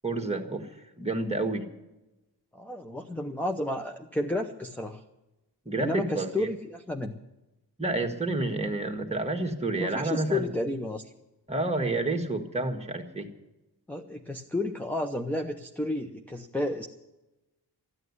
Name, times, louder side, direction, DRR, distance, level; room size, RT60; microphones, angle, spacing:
voice 1, 0.0-0.7 1.0-1.6 5.7-6.5 7.8-10.5 11.5-13.3, right 2 dB, 15° right, 3 dB, 1.6 m, -29 dB
voice 2, 2.5-5.0 5.8-7.2 9.8-11.1 13.9-16.9, left 1 dB, 5° left, 5 dB, 0.7 m, -31 dB
14.0 x 9.0 x 9.6 m, 1.0 s
wide cardioid pair, 125°, 42 cm